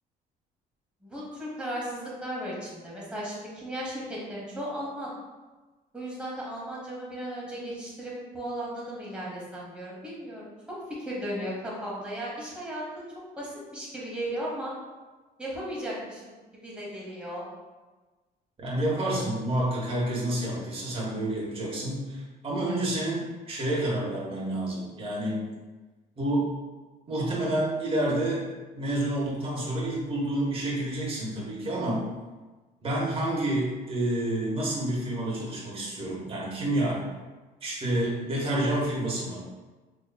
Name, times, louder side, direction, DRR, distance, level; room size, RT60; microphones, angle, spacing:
voice 1, 1.0-5.1 5.9-12.8 13.4-14.7 15.4-17.4, equal, 5° right, -6 dB, 1.2 m, -36 dB
voice 2, 18.6-25.4 26.2-26.5 27.1-28.4 28.7-32.0 32.8-37.0 37.6-39.4, right 1 dB, 35° right, -5 dB, 1.2 m, -29 dB
3.9 x 3.0 x 2.2 m, 1.3 s
cardioid pair, 110°, 17 cm